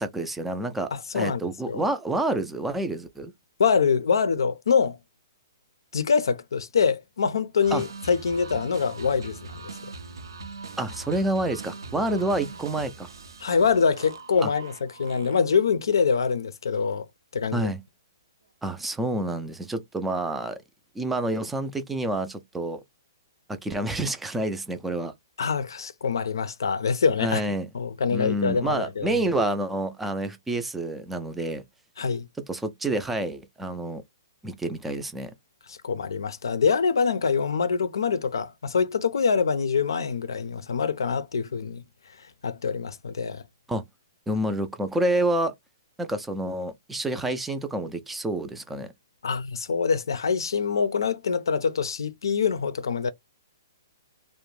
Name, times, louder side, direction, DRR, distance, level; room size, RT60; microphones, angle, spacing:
voice 1, 0.0-3.3 7.7-7.8 10.8-13.1 14.4-14.5 17.5-17.8 18.6-20.6 21.0-22.8 23.5-25.1 27.2-27.7 28.1-31.6 32.5-34.0 34.4-35.3 43.7-43.8 44.3-45.5 46.0-48.9, right 1 dB, 5° right, 0.3 m, -28 dB
voice 2, 0.9-1.4 1.7-1.8 3.6-5.0 5.9-9.6 13.4-17.1 17.3-17.7 25.4-27.4 27.7-29.2 32.0-32.3 35.7-41.8 42.4-43.4 49.2-53.1, left 5 dB, 85° left, 0.4 m, -25 dB
sound 1, 7.6-15.7, right 4 dB, 85° right, 0.6 m, -41 dB
2.5 x 2.1 x 3.0 m
hypercardioid pair, 145°, 2 cm